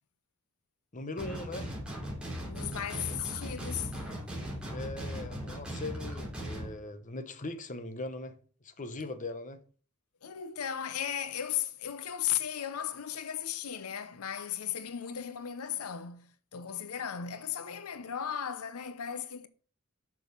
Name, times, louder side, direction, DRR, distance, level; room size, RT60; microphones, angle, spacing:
voice 1, 0.9-1.7 4.7-8.4 8.6-9.6, left 2 dB, 35° left, 1.0 m, -40 dB
sound 1, 1.2-6.7, equal, 5° right, 3.2 m, -38 dB
voice 2, 2.5-3.9 10.2-19.5, left 9 dB, 90° left, 0.7 m, -36 dB
6.8 x 6.3 x 6.9 m
head